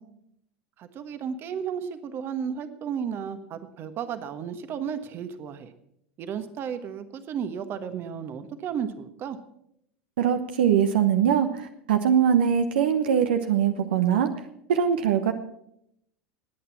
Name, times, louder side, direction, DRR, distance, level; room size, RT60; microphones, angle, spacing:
voice 1, 0.8-5.7 6.2-9.4, right 7 dB, 40° right, 10 dB, 1.3 m, -33 dB
voice 2, 10.2-14.3 14.7-15.3, right 8 dB, 65° right, 7 dB, 1.0 m, -22 dB
19.5 x 8.8 x 6.0 m, 0.75 s
figure-of-eight pair, 80°, 6 cm